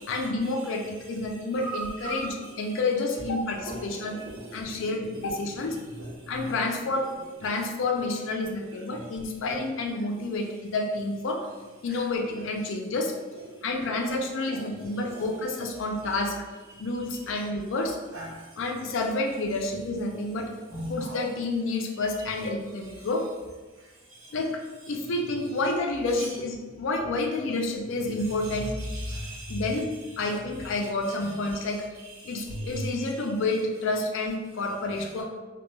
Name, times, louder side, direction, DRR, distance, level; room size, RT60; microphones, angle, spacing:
voice 1, 0.1-4.2 4.5-5.8 6.3-7.1 7.4-11.5 11.8-13.1 13.6-16.4 16.8-18.0 18.6-20.5 20.9-23.3 24.3-28.7 29.5-29.9 30.2-31.8 32.2-35.2, left 2 dB, 65° left, 3 dB, 0.4 m, -29 dB
voice 2, 1.6-2.5 3.7-4.9 6.0-6.1 6.3-6.5 14.5-14.6 15.1-15.3 17.2-17.3 18.1-18.3 20.7-21.2 28.5-29.6 32.2-32.3 32.7-32.9, right 1 dB, 80° right, -5 dB, 0.9 m, -39 dB
sound 1, 32.5-32.9, right 1 dB, 55° right, 0.4 m, -34 dB
2.2 x 2.1 x 3.1 m, 1.3 s
head